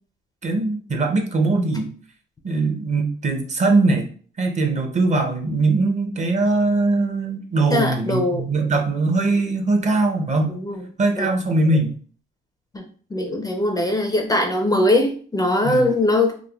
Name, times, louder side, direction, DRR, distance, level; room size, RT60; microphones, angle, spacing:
voice 1, 0.4-1.9 2.4-4.1 4.4-10.5 11.0-11.9 15.6-15.9, right 3 dB, 35° right, 4 dB, 0.6 m, -21 dB
voice 2, 7.7-8.5 10.5-10.8 11.2-11.3 12.7-12.8 13.1-16.3, left 1 dB, 20° left, 4 dB, 0.4 m, -21 dB
3.3 x 2.0 x 2.2 m, 0.44 s
cardioid pair, 90°, 20 cm